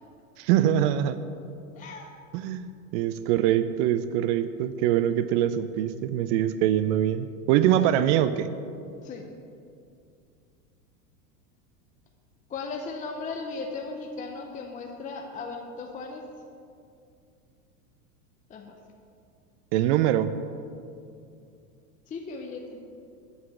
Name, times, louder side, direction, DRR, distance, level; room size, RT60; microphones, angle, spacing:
voice 1, 0.4-1.2 2.3-8.5 19.7-20.3, right 11 dB, 50° right, 12 dB, 0.5 m, -24 dB
voice 2, 1.7-2.1 9.0-9.3 12.5-16.2 18.5-18.8 22.1-22.8, left 4 dB, 15° left, 2 dB, 0.6 m, -37 dB
8.2 x 4.8 x 7.1 m, 2.4 s
hypercardioid pair, 105°, 46 cm